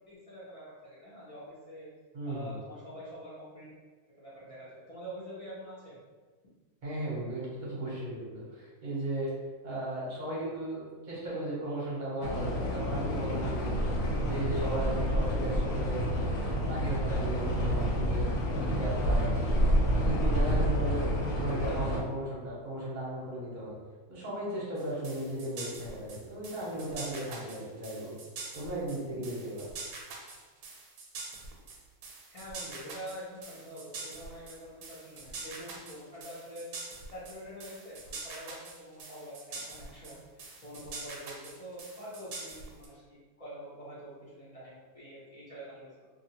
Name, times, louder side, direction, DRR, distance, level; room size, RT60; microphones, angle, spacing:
voice 1, 0.1-1.9 2.3-3.7 4.2-6.0 16.6-16.7 32.3-36.7 37.1-40.2 40.6-46.1, equal, 45° left, -9 dB, 0.4 m, -46 dB
voice 2, 2.1-2.5 6.8-9.3 9.6-13.8 14.2-16.3 16.7-19.8 20.0-23.8 24.1-28.2 28.5-29.7, right 1 dB, 40° right, -6 dB, 0.7 m, -36 dB
sound 1, 12.2-22.0, equal, 85° left, 1.1 m, -29 dB
sound 2, 24.8-42.9, right 3 dB, 80° right, 1.1 m, -44 dB
2.6 x 2.4 x 2.8 m, 1.4 s
omnidirectional pair, 1.6 m